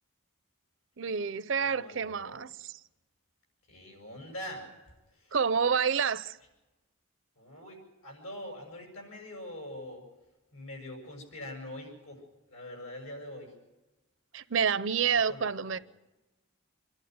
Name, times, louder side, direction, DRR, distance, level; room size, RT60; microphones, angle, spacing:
voice 1, 1.0-2.8 5.3-6.4 14.3-15.8, right 6 dB, 60° right, 0.6 m, -28 dB
voice 2, 1.6-2.5 3.7-4.7 5.1-5.4 7.4-10.1 10.5-12.2 12.5-13.5 15.3-15.8, left 1 dB, 85° left, 7.2 m, -44 dB
26.0 x 12.0 x 9.4 m
head